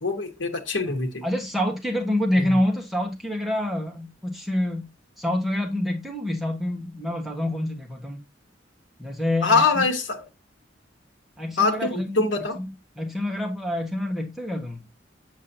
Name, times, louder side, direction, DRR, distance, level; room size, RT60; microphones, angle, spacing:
voice 1, 0.0-1.2 2.4-2.6 9.4-10.2 11.6-12.6, left 3 dB, 75° left, 1.2 m, -23 dB
voice 2, 1.2-4.9 5.2-8.2 9.0-9.8 11.4-12.2 12.6-12.7 13.0-14.9, left 1 dB, ahead, 1.3 m, -27 dB
7.4 x 6.2 x 2.7 m
head